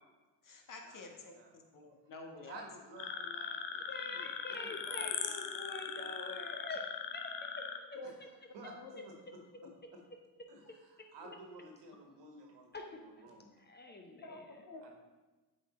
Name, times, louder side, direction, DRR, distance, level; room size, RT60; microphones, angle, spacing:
voice 1, 0.4-2.6 7.9-8.1 8.6-9.0 9.6-9.7 14.2-14.9, left 3 dB, 40° left, 2 dB, 1.4 m, -49 dB
voice 2, 2.4-5.4 8.0-8.1 8.5-8.7 9.0-9.1 9.9-10.0 10.5-13.6 14.8-15.0, right 2 dB, 60° right, 1 dB, 1.7 m, -53 dB
sound 1, 3.0-7.8, left 7 dB, 65° left, 0.8 m, -40 dB
voice 3, 3.9-8.0 11.0-11.1 12.7-13.0 13.6-14.5, left 2 dB, 20° left, 3 dB, 0.9 m, -46 dB
7.8 x 4.3 x 4.3 m, 1.2 s
hypercardioid pair, 60°, 47 cm